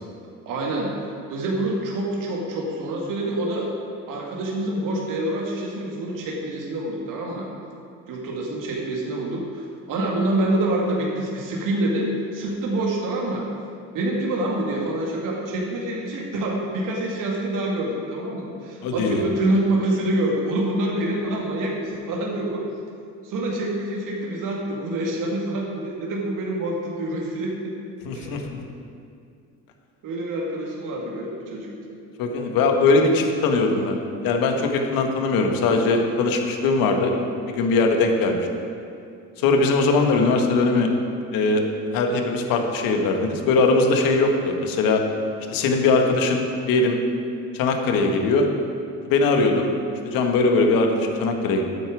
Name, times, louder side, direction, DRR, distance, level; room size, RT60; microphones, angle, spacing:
voice 1, 0.5-0.9 1.3-3.7 4.1-7.5 8.1-13.5 13.9-22.7 23.2-27.7 28.1-28.4 30.0-31.7, right 1 dB, 60° right, -2 dB, 2.2 m, -26 dB
voice 2, 18.8-19.2 28.0-28.6 32.2-37.1 37.5-38.5 39.4-40.9 41.3-41.6 41.9-45.0 45.5-47.0 47.5-48.5 49.0-49.7 50.0-51.6, left 3 dB, 65° left, 3 dB, 1.7 m, -20 dB
12.5 x 8.9 x 4.9 m, 2.4 s
hypercardioid pair, 70°, 37 cm